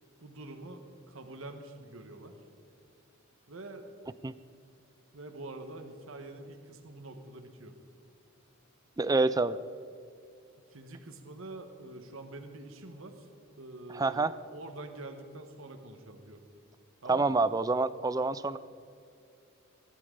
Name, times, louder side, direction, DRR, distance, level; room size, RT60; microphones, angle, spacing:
voice 1, 0.2-0.8 1.1-2.4 3.5-3.8 5.1-7.8 10.7-13.3 13.6-16.4 17.0-17.4, right 2 dB, 65° right, 6 dB, 1.2 m, -45 dB
voice 2, 9.0-9.6 13.9-14.4 17.1-18.6, right 3 dB, 15° right, 15 dB, 0.3 m, -27 dB
22.5 x 11.5 x 3.8 m, 2.5 s
head